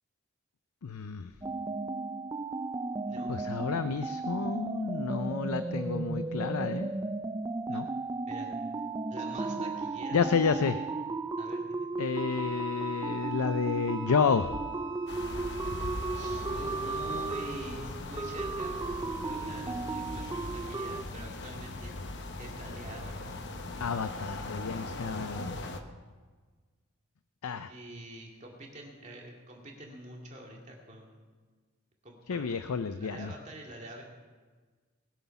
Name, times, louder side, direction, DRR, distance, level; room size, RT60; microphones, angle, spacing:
voice 1, 0.8-1.3 3.3-6.9 7.7-7.9 10.1-10.8 12.0-14.6 23.8-25.5 27.4-27.7 32.3-33.3, left 5 dB, 90° left, 11 dB, 0.5 m, -30 dB
sound 1, 1.4-21.0, right 3 dB, 15° right, 0.3 m, -35 dB
voice 2, 3.1-3.4 7.7-7.8 8.3-8.5 9.1-10.2 11.4-11.9 16.1-18.8 19.2-21.9 22.4-23.3 27.7-31.3 32.0-32.5 33.0-34.0, right 1 dB, 35° right, -1 dB, 2.3 m, -46 dB
Wind instrument woodwind instrument, 12.1-16.4, right 4 dB, 55° right, 0.8 m, -52 dB
sound 2, 15.1-25.8, left 2 dB, 50° left, 0.9 m, -39 dB
20.0 x 8.3 x 5.8 m, 1.4 s
head